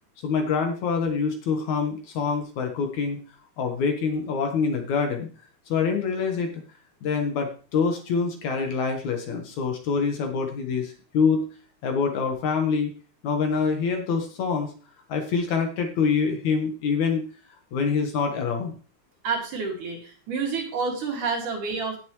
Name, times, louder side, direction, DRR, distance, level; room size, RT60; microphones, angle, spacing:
voice 1, 0.2-3.2 3.6-5.3 5.7-6.5 7.0-11.5 11.8-12.9 13.2-14.7 15.1-17.3 17.7-18.7, left 5 dB, 65° left, 4 dB, 2.5 m, -25 dB
voice 2, 19.2-22.0, right 5 dB, 65° right, 1 dB, 3.7 m, -29 dB
17.0 x 7.1 x 3.2 m, 0.37 s
omnidirectional pair, 4.0 m